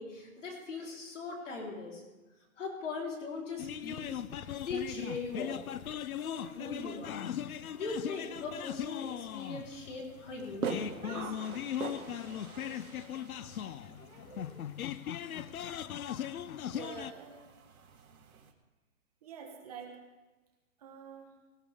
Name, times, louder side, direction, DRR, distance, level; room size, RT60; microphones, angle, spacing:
voice 1, 0.0-2.0 2.6-4.2 4.6-5.6 6.2-7.2 7.7-11.3, left 3 dB, 55° left, -1 dB, 4.1 m, -40 dB
sound 1, 3.6-17.1, left 10 dB, 75° left, 0.7 m, -39 dB
sound 2, 4.4-18.5, right 6 dB, 80° right, 2.0 m, -46 dB
voice 2, 16.7-17.4 19.2-20.0 20.8-21.3, right 6 dB, 25° right, 2 dB, 1.4 m, -46 dB
17.5 x 16.0 x 3.6 m, 1.2 s
hypercardioid pair, 170°, 43 cm